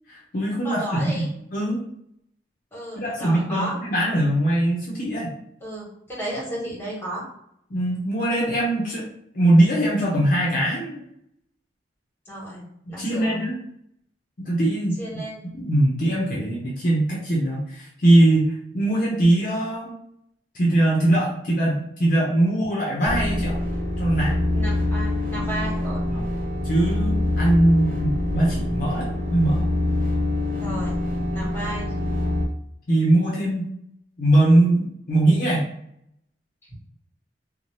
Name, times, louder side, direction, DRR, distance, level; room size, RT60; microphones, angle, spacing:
voice 1, 0.1-1.8 3.0-5.3 7.7-9.1 9.3-11.0 13.0-13.6 14.4-15.0 15.4-19.9 20.5-23.6 24.0-24.4 26.1-26.3 26.6-29.7 32.9-33.7 34.2-35.7, right 1 dB, 50° left, -4 dB, 0.6 m, -21 dB
voice 2, 0.6-1.3 2.7-3.7 5.6-7.2 12.3-13.4 15.0-15.3 24.5-26.1 30.5-31.0 31.3-31.9, right 1 dB, 15° left, -6 dB, 1.3 m, -33 dB
sound 1, 23.0-32.5, left 1 dB, 50° right, 0.7 m, -25 dB
2.7 x 2.1 x 3.1 m, 0.73 s
head